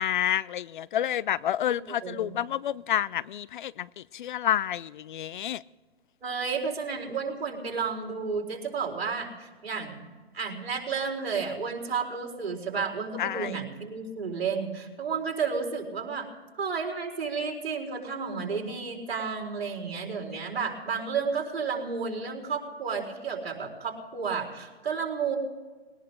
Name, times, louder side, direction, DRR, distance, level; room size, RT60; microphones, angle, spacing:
voice 1, 0.0-5.6 13.2-13.6, left 11 dB, 50° left, 0.4 m, -29 dB
voice 2, 1.9-2.3 6.2-10.0 10.3-16.3 16.6-25.4, right 5 dB, 70° right, 4.2 m, -32 dB
20.5 x 19.0 x 3.7 m
hypercardioid pair, 140°, 31 cm